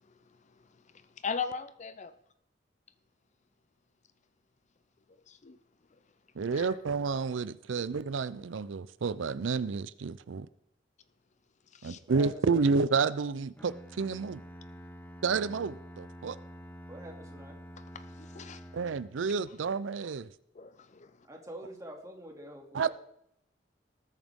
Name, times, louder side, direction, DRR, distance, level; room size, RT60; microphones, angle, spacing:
voice 1, 1.2-2.1 5.3-5.6 6.5-6.7 11.7-12.0 17.9-18.6 20.6-21.1, left 5 dB, 40° left, 0.6 m, -38 dB
voice 2, 6.4-10.5 11.8-14.4 15.2-16.4 18.7-20.3 22.7-22.9, right 5 dB, 80° right, 0.5 m, -30 dB
voice 3, 12.1-12.6 16.9-17.6 21.2-22.9, equal, 15° right, 2.5 m, -45 dB
Bowed string instrument, 13.6-19.4, equal, 10° left, 1.2 m, -48 dB
19.5 x 9.0 x 3.6 m
head